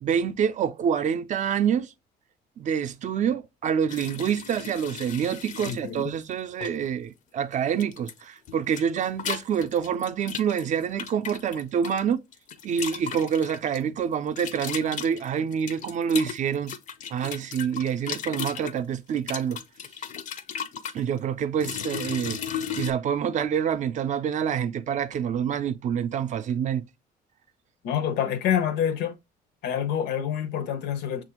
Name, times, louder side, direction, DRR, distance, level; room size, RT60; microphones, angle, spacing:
voice 1, 0.0-1.9 2.6-12.2 12.6-16.7 17.1-19.6 20.9-22.4 22.8-26.9, right 8 dB, 45° right, 0.4 m, -27 dB
sound 1, 3.9-5.8 6.6-6.9 7.8-8.2 8.5-12.0 12.3-13.8 14.4-18.7 19.2-21.0 21.6-22.9, left 8 dB, 50° left, 0.5 m, -35 dB
voice 2, 5.6-6.0 27.8-29.2 29.6-31.2, left 9 dB, 80° left, 0.7 m, -27 dB
6.0 x 2.5 x 2.9 m
cardioid pair, 110°, 17 cm